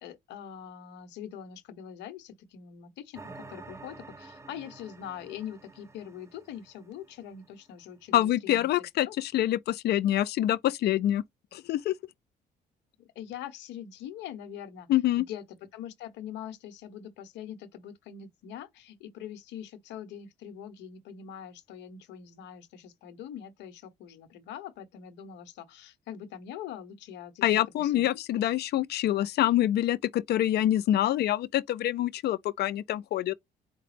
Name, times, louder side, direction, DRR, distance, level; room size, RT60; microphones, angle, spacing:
voice 1, 0.0-9.1 13.0-14.9 15.2-15.4 15.7-28.1 28.3-28.4, left 9 dB, 85° left, 1.0 m, -43 dB
sound 1, 3.1-7.6, right 3 dB, 15° right, 0.8 m, -49 dB
voice 2, 8.1-11.2 11.5-11.9 14.9-15.2 27.4-33.3, left 13 dB, 70° left, 0.4 m, -26 dB
4.8 x 2.2 x 3.2 m
cardioid pair, 80°, 18 cm